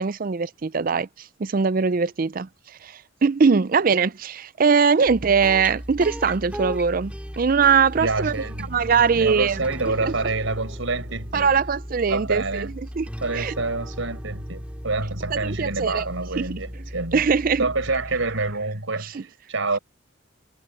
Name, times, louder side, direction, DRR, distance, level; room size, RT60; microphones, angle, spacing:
voice 1, 0.0-8.3 8.7-9.6 10.0-10.1 11.3-13.1 13.3-13.5 15.3-16.1 16.4-16.5 17.1-17.7 19.1-19.2, right 5 dB, 45° right, 0.5 m, -21 dB
sound 1, 5.1-18.6, equal, 5° right, 4.5 m, -36 dB
voice 2, 7.9-8.8 9.1-11.5 12.1-12.7 13.2-17.2 17.6-19.8, right 3 dB, 85° right, 5.0 m, -27 dB
head